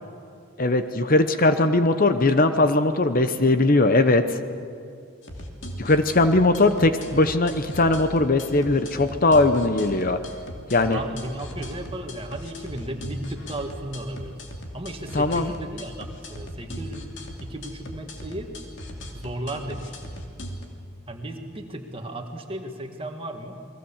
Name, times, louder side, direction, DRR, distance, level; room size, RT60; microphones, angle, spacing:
voice 1, 0.6-4.4 5.8-10.2 10.7-11.0 15.1-15.5, left 2 dB, 40° left, 9 dB, 0.9 m, -20 dB
sound 1, 5.2-20.6, equal, 60° left, 2.7 m, -38 dB
voice 2, 10.9-14.4 14.7-17.1 17.4-18.5 19.1-20.1 21.1-23.6, right 1 dB, 25° right, 4 dB, 2.0 m, -35 dB
29.0 x 21.0 x 7.3 m, 2.4 s
head